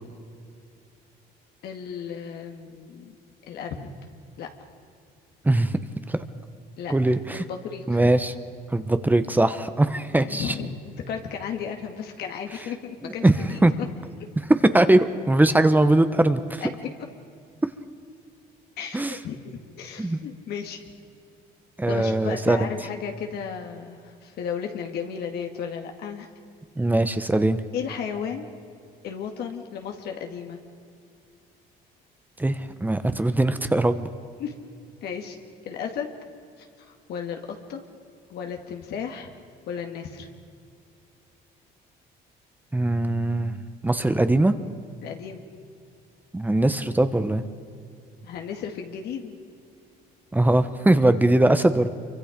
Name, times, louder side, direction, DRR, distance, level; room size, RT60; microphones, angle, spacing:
voice 1, 1.6-3.1 3.5-3.9 4.4-4.5 6.8-6.9 7.3-8.1 10.1-13.6 16.6-16.9 18.8-20.8 21.9-26.3 27.7-28.5 29.0-30.6 34.4-34.5 35.0-35.4 35.6-36.1 36.6-37.8 38.3-39.3 39.7-40.3 45.0-45.4 48.2-49.4, left 7 dB, 75° left, 3 dB, 2.1 m, -34 dB
voice 2, 6.9-7.4 7.9-8.3 8.7-10.5 13.0-13.3 13.6-13.7 14.7-16.6 18.9-19.2 20.0-20.2 21.8-22.6 26.8-27.6 32.4-34.1 42.7-43.6 43.8-44.5 46.3-47.4 50.3-51.9, right 2 dB, 10° right, 10 dB, 1.0 m, -21 dB
26.5 x 24.0 x 5.2 m, 2.4 s
cardioid pair, 110°, 17 cm